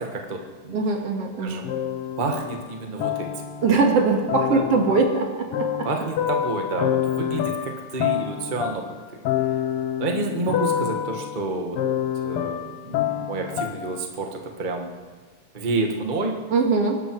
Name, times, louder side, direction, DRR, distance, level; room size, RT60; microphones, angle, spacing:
voice 1, 0.0-0.8 1.4-1.7 2.2-3.4 4.5-4.6 5.8-8.9 10.0-11.8 12.2-14.9 15.5-16.4, right 3 dB, 70° right, 2 dB, 0.4 m, -29 dB
voice 2, 0.7-1.6 3.6-5.9 16.5-17.0, right 4 dB, 55° right, 2 dB, 2.7 m, -21 dB
sound 1, 1.6-3.9 4.3-14.0, left 10 dB, 90° left, 1.2 m, -27 dB
24.5 x 12.0 x 4.7 m, 1.4 s
omnidirectional pair, 3.7 m